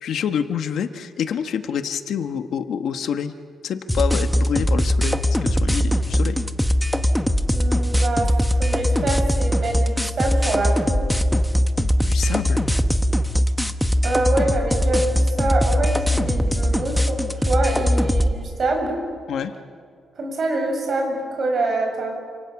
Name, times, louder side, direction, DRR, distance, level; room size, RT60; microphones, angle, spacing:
voice 1, 0.0-3.3 3.6-6.4 12.0-12.8 19.3-19.5, left 8 dB, 65° left, 8 dB, 1.3 m, -27 dB
sound 1, 3.9-18.3, equal, ahead, 0.9 m, -20 dB
voice 2, 7.5-11.1 14.0-18.9 20.2-22.2, right 2 dB, 40° right, 2 dB, 6.8 m, -25 dB
29.0 x 27.5 x 7.2 m, 2.2 s
wide cardioid pair, 175°, 0 cm